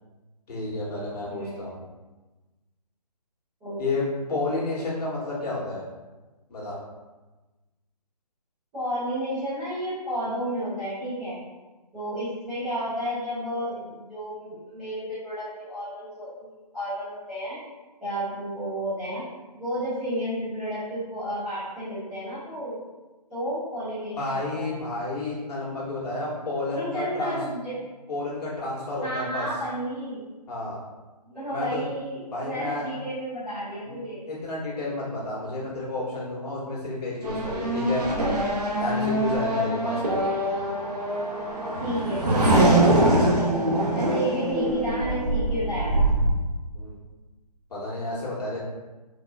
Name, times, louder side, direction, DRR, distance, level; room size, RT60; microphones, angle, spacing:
voice 1, 0.5-1.8 3.8-4.0 4.3-5.8 6.5-6.8 24.2-27.4 28.1-29.5 30.5-30.8 31.5-31.9 32.3-32.9 33.8-34.0 34.3-38.0 38.8-40.2 46.7-46.9 47.7-48.6, left 2 dB, 70° left, -6 dB, 1.4 m, -31 dB
voice 2, 1.2-1.6 3.6-3.8 8.7-11.4 11.9-17.6 18.0-19.2 19.5-22.9 23.3-24.8 26.7-27.8 29.0-30.2 31.2-34.3 41.8-42.7 43.9-46.1, equal, 5° right, -21 dB, 0.3 m, -31 dB
Race car auto racing / Accelerating revving vroom, 37.2-46.3, right 1 dB, 70° right, 0.8 m, -23 dB
4.1 x 2.4 x 2.3 m, 1.2 s
hypercardioid pair, 155°, 21 cm